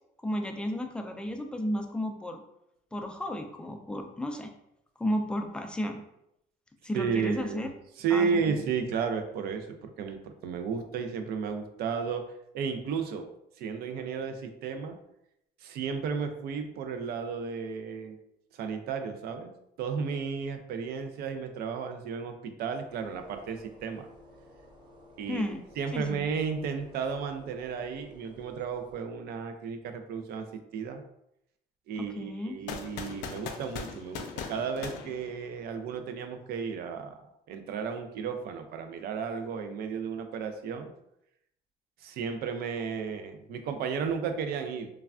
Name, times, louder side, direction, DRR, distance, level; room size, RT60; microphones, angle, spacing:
voice 1, 0.2-2.4 2.9-4.5 5.0-6.0 6.8-7.7 8.1-8.5 25.3-25.6 25.9-26.3 32.0-32.6, left 1 dB, 5° left, 4 dB, 0.3 m, -33 dB
voice 2, 6.9-7.7 8.0-12.2 12.5-13.3 13.6-15.0 15.6-18.2 18.5-19.5 19.8-24.1 25.2-25.4 25.8-30.5 30.7-31.0 31.9-37.2 37.5-40.9 42.0-44.9, right 6 dB, 70° right, 7 dB, 0.4 m, -33 dB
sound 1, 22.9-29.0, left 1 dB, 25° right, 0.6 m, -54 dB
sound 2, 32.7-35.9, left 6 dB, 85° left, 0.4 m, -40 dB
3.2 x 2.3 x 2.4 m, 0.80 s
cardioid pair, 110°, 17 cm